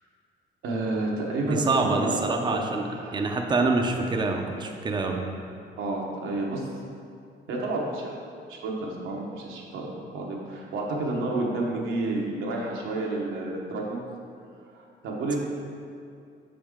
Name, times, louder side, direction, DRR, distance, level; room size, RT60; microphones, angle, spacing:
voice 1, 0.6-3.3 5.8-6.6 7.5-8.2 8.5-14.0 15.0-15.4, right 2 dB, 90° right, -2 dB, 1.1 m, -30 dB
voice 2, 1.4-5.2, right 3 dB, 20° right, 2 dB, 0.5 m, -26 dB
6.1 x 5.1 x 3.6 m, 2.4 s
cardioid pair, 90°, 20 cm